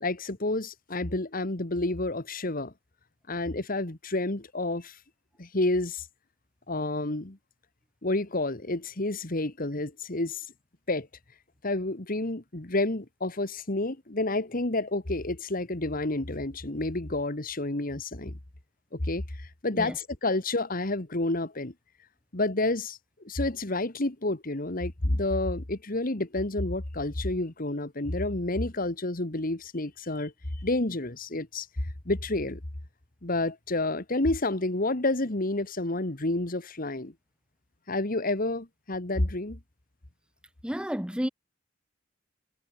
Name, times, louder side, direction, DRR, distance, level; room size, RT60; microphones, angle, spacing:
voice 1, 0.0-2.7 3.3-5.0 5.4-6.1 6.7-7.4 8.0-10.5 10.9-11.1 11.6-18.3 18.9-21.7 22.3-23.0 23.2-30.3 30.6-31.7 32.1-32.6 33.2-37.1 37.9-39.6, left 2 dB, 45° left, 1.9 m, -29 dB
voice 2, 40.6-41.3, equal, 5° right, 1.2 m, -31 dB
head